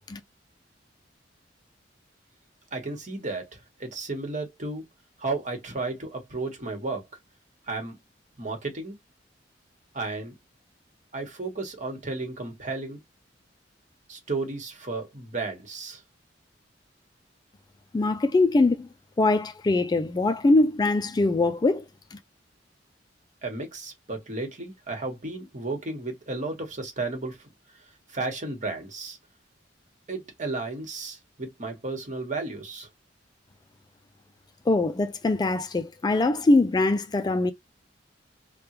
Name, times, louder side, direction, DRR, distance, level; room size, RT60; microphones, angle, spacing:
voice 1, 2.7-4.8 5.2-7.1 7.7-8.0 8.4-8.9 9.9-10.3 11.1-13.0 14.1-16.0 23.4-27.4 28.1-29.2 30.1-32.9, right 3 dB, 40° right, 1.3 m, -33 dB
voice 2, 17.9-18.9 19.2-21.8 22.1-22.2 34.7-37.5, left 2 dB, 20° left, 0.3 m, -22 dB
3.4 x 2.2 x 2.9 m
head